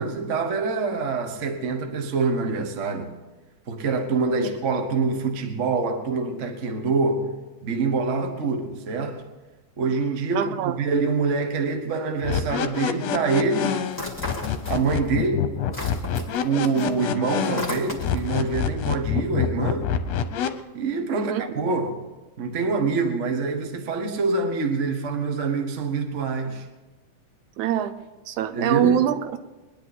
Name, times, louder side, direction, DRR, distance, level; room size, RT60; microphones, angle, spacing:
voice 1, 0.0-3.1 3.7-7.3 7.6-9.2 9.8-13.7 14.7-15.5 16.4-19.9 20.7-22.0 22.4-26.6 28.5-29.0, right 4 dB, 50° right, 0.9 m, -25 dB
voice 2, 10.3-10.8 21.1-21.4 27.6-27.9 28.3-29.4, right 10 dB, 80° right, 2.1 m, -24 dB
sound 1, 12.2-20.5, left 9 dB, 70° left, 1.8 m, -26 dB
sound 2, 13.9-15.1 15.4-18.4, left 1 dB, 10° left, 1.5 m, -35 dB
22.0 x 10.5 x 4.2 m
omnidirectional pair, 3.4 m